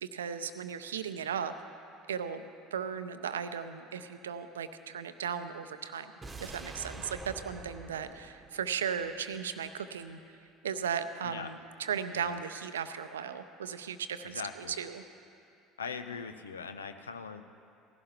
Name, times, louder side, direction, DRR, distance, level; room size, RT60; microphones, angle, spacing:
voice 1, 0.0-1.5 2.1-6.1 6.4-10.2 10.6-15.0, right 7 dB, 75° right, 10 dB, 0.5 m, -36 dB
sound 1, 6.2-9.4 9.7-9.8, right 2 dB, 15° right, 1.2 m, -46 dB
voice 2, 14.2-14.8 15.8-17.4, left 5 dB, 80° left, 9 dB, 0.6 m, -41 dB
19.0 x 16.0 x 2.9 m, 2.5 s
figure-of-eight pair, 65°, 0 cm